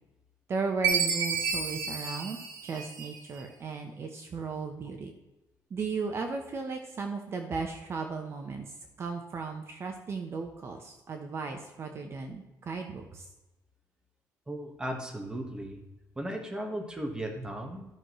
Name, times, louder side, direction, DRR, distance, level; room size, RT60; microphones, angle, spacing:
voice 1, 0.5-2.4 2.6-5.1 5.7-13.3, right 4 dB, 40° right, 4 dB, 1.0 m, -36 dB
Chime, 0.8-3.4, right 6 dB, 75° right, 1.6 m, -30 dB
voice 2, 14.5-15.8 16.1-17.9, right 1 dB, 10° right, 2 dB, 1.5 m, -36 dB
14.0 x 6.4 x 3.2 m, 1.0 s
cardioid pair, 145°, 7 cm